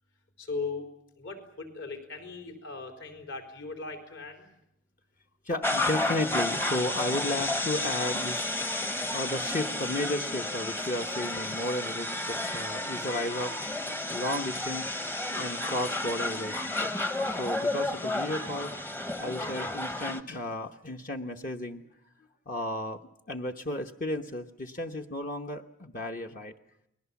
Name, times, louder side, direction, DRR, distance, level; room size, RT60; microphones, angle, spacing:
voice 1, 0.4-4.5, left 4 dB, 60° left, 4 dB, 4.3 m, -38 dB
voice 2, 5.4-13.6 14.1-21.8 22.5-23.0 23.3-26.5, left 1 dB, 40° left, 4 dB, 1.0 m, -34 dB
sound 1, 5.6-20.2, left 2 dB, 10° left, 0.9 m, -32 dB
29.5 x 21.0 x 7.2 m, 0.80 s
head